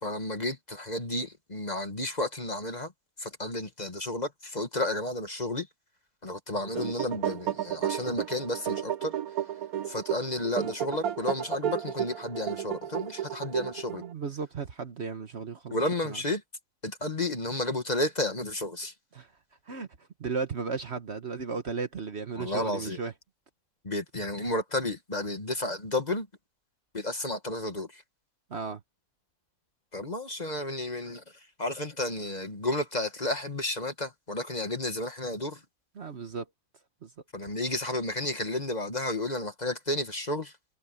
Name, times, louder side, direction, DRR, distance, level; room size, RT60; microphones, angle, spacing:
voice 1, 0.0-2.9 3.2-5.7 6.2-9.1 9.9-14.0 15.7-16.4 16.8-18.9 22.4-23.0 23.8-26.3 26.9-28.0 29.9-31.2 31.6-35.6 37.3-40.5, left 1 dB, 30° left, 1.8 m, -32 dB
sound 1, 6.5-14.1, right 10 dB, 80° right, 1.4 m, -33 dB
voice 2, 13.9-15.8 16.0-16.2 19.1-19.3 19.7-19.9 20.2-23.1 28.5-28.8 36.0-36.5 37.0-37.1, right 5 dB, 50° right, 1.3 m, -35 dB
omnidirectional pair, 1.5 m